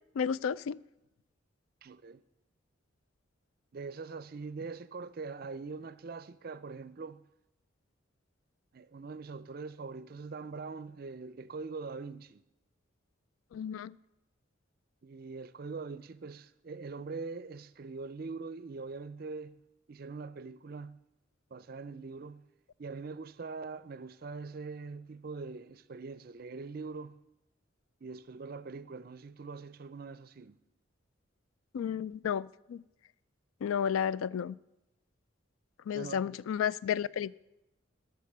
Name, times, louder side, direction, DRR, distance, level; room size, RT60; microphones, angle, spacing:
voice 1, 0.2-0.8 13.5-13.9 31.7-32.8 33.6-34.6 35.9-37.3, left 8 dB, 90° left, 0.3 m, -32 dB
voice 2, 1.8-2.2 3.7-7.2 8.7-12.4 15.0-19.6 19.9-21.0 21.5-22.4 22.8-27.2 28.0-30.6 32.2-32.3 35.9-36.4, right 4 dB, 45° right, 0.4 m, -43 dB
13.0 x 6.7 x 6.7 m
head